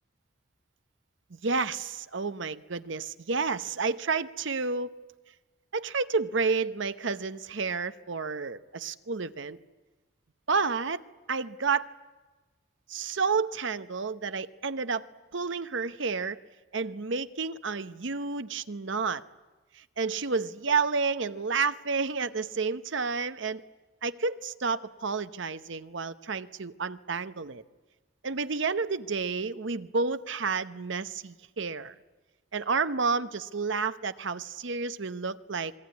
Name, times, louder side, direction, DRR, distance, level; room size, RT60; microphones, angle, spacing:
voice 1, 1.3-4.9 5.7-9.6 10.5-11.0 11.3-11.9 12.9-15.0 15.3-16.4 16.7-19.2 19.8-23.6 24.0-27.6 28.2-31.9 32.5-35.7, right 4 dB, 65° right, 13 dB, 0.9 m, -30 dB
26.5 x 21.0 x 9.5 m, 1.3 s
head